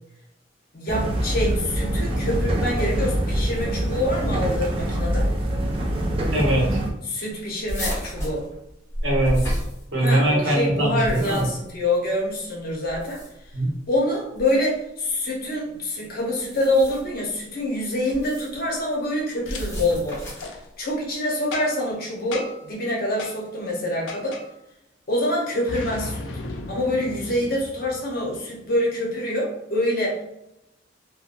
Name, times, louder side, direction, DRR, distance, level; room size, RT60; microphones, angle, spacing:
voice 1, 0.7-5.3 7.0-8.5 10.0-13.2 13.9-20.2 20.8-24.4 25.1-26.4 26.7-30.2, left 1 dB, 55° left, -3 dB, 0.8 m, -26 dB
sound 1, 0.9-6.9, right 1 dB, 30° right, 0.4 m, -24 dB
voice 2, 6.3-6.8 9.0-9.6 9.9-11.4 13.5-13.7, right 1 dB, 75° right, -3 dB, 1.0 m, -21 dB
sound 2, 7.7-10.3 10.9-11.7 12.8-13.5 14.4-14.6 16.4-17.2 18.1-18.6 19.4-20.6, equal, 15° left, 1.1 m, -31 dB
Boom, 19.5-19.6 20.3-20.6 21.5-21.9 22.3-22.7 23.2-23.4 24.1-24.5 25.7-28.4, left 3 dB, 80° left, 0.4 m, -35 dB
2.9 x 2.2 x 2.5 m, 0.85 s
head